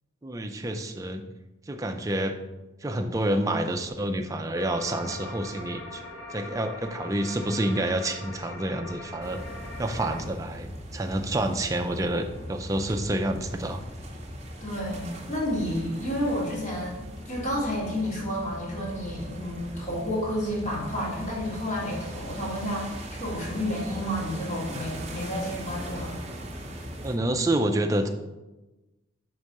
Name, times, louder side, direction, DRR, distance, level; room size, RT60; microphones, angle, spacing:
voice 1, 0.2-1.2 1.7-2.4 2.8-6.0 6.3-9.4 9.8-13.8 27.0-28.1, right 1 dB, 15° right, 5 dB, 0.3 m, -28 dB
sound 1, 4.5-10.2, left 2 dB, 75° left, 1.0 m, -41 dB
sound 2, 9.2-27.2, equal, 30° right, 0.7 m, -39 dB
voice 2, 14.6-26.1, equal, 35° left, -5 dB, 1.6 m, -31 dB
4.8 x 3.7 x 5.3 m, 1.1 s
head